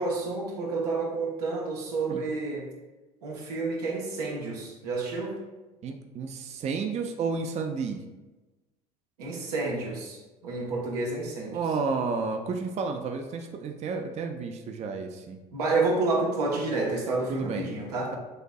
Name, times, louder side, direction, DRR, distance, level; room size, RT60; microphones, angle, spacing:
voice 1, 0.0-2.6 3.2-5.4 9.2-10.2 10.4-11.6 15.5-18.1, right 3 dB, 85° right, -2 dB, 1.0 m, -29 dB
voice 2, 5.8-8.0 11.5-15.4 17.3-17.7, right 4 dB, 35° right, 4 dB, 0.5 m, -31 dB
6.5 x 2.6 x 2.3 m, 1.1 s
hypercardioid pair, 75°, 20 cm